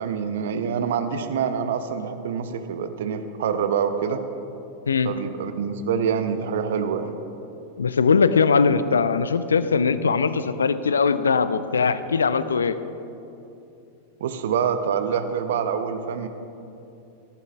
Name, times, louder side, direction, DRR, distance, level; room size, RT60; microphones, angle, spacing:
voice 1, 0.0-4.2 5.0-7.1 14.2-16.3, right 7 dB, 60° right, 9 dB, 0.7 m, -26 dB
voice 2, 7.8-12.8, left 5 dB, 70° left, 13 dB, 0.5 m, -20 dB
17.5 x 14.0 x 2.4 m, 2.8 s
figure-of-eight pair, 90°, 0 cm